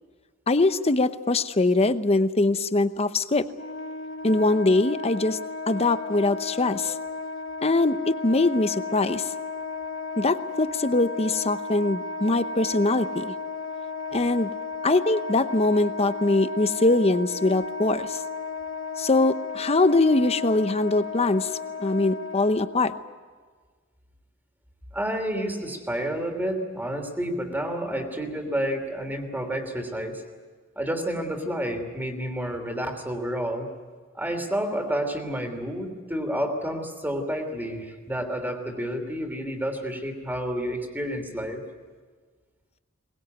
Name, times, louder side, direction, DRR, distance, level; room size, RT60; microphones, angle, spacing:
voice 1, 0.5-3.5 4.2-5.4 5.7-6.9 7.6-9.2 10.2-13.3 14.1-14.5 14.8-18.2 19.0-21.5 21.8-22.9, left 2 dB, 30° left, 12 dB, 0.8 m, -22 dB
Wind instrument woodwind instrument, 3.5-23.0, left 4 dB, 70° left, 0.8 m, -34 dB
voice 2, 24.9-30.2 30.8-33.7 34.1-41.6, equal, 10° right, 5 dB, 2.9 m, -30 dB
22.5 x 20.0 x 9.3 m, 1.5 s
head